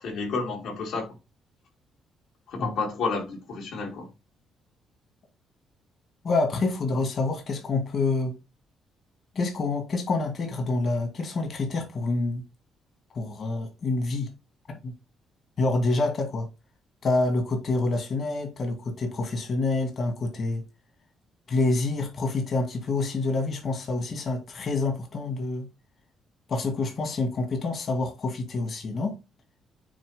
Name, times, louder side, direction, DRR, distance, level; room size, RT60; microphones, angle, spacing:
voice 1, 0.0-1.1 2.5-4.1, left 4 dB, 75° left, 3.0 m, -30 dB
voice 2, 6.2-8.3 9.3-12.4 13.1-14.3 14.8-14.9 15.6-16.5 17.0-20.6 21.5-25.7 26.5-29.1, left 3 dB, 50° left, 2.3 m, -27 dB
8.9 x 3.0 x 5.1 m
cardioid pair, 90°, 0 cm